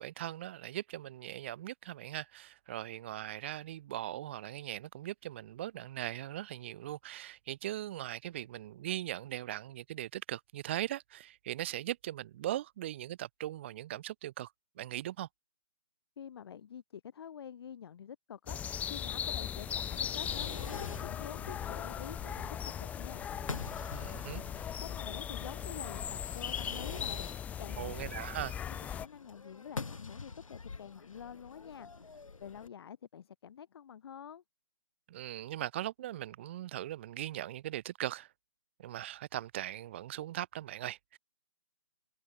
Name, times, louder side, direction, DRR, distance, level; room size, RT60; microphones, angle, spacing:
voice 1, 0.0-14.5 14.8-15.3 23.9-24.4 27.8-28.6 35.1-38.3 38.8-41.2, right 13 dB, 20° right, 0.4 m, -39 dB
voice 2, 16.2-23.3 24.8-27.9 28.9-34.4, left 8 dB, 50° left, 3.5 m, -48 dB
sound 1, 18.5-29.1, left 9 dB, 10° left, 0.7 m, -38 dB
Fireworks, 19.6-32.7, left 4 dB, 80° left, 1.2 m, -47 dB
figure-of-eight pair, 140°, 17 cm